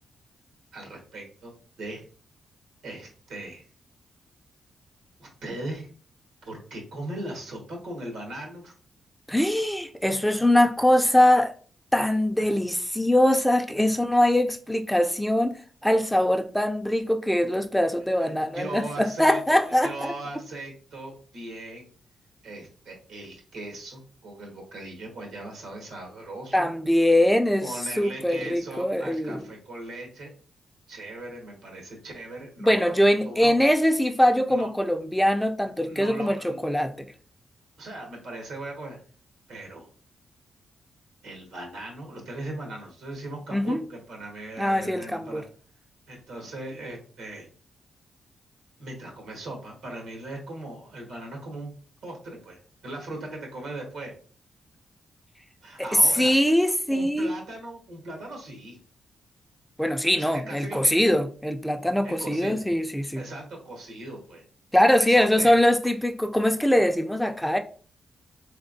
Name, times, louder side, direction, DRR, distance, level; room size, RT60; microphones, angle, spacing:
voice 1, 0.7-2.0 2.8-3.7 5.2-5.9 6.4-8.7 12.4-12.5 13.8-13.9 18.2-21.9 22.4-26.7 27.6-30.3 30.9-33.5 34.5-34.7 35.9-36.6 37.8-39.0 39.5-39.9 41.2-45.4 46.1-47.5 48.8-51.7 52.0-52.6 52.8-54.1 55.6-58.8 60.1-61.1 62.0-62.6 63.1-64.4 65.0-65.6, right 2 dB, 90° right, 1.4 m, -39 dB
voice 2, 9.3-11.5 11.9-15.5 15.8-20.1 26.5-29.4 32.6-37.1 43.5-43.8 44.6-45.4 56.0-57.3 59.8-63.2 64.7-67.6, left 1 dB, 5° left, 0.4 m, -22 dB
3.4 x 3.3 x 2.6 m
cardioid pair, 70°, 0 cm